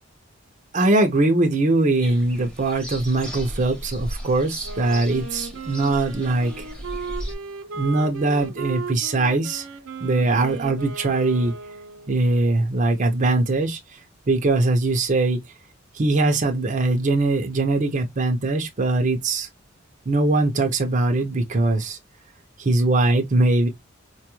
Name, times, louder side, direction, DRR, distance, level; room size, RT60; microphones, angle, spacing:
voice 1, 0.7-6.7 7.8-9.6 10.0-11.5 12.1-13.8 14.3-15.4 15.9-19.5 20.1-22.0 22.6-23.7, right 2 dB, 40° right, 0.6 m, -21 dB
sound 1, 2.0-7.3, equal, 5° left, 0.9 m, -36 dB
Wind instrument woodwind instrument, 4.6-12.3, right 4 dB, 80° right, 0.7 m, -36 dB
4.5 x 2.3 x 3.0 m
head